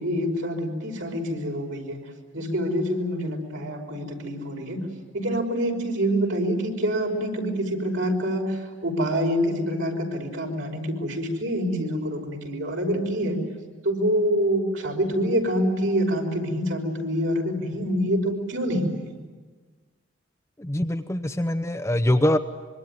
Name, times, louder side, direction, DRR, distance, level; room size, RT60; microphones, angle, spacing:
voice 1, 0.0-2.0 2.3-4.8 5.1-13.4 13.8-19.0, equal, 85° right, 1 dB, 5.6 m, -26 dB
voice 2, 20.6-22.4, left 1 dB, 15° left, 8 dB, 0.8 m, -23 dB
25.5 x 23.5 x 9.6 m, 1.4 s
head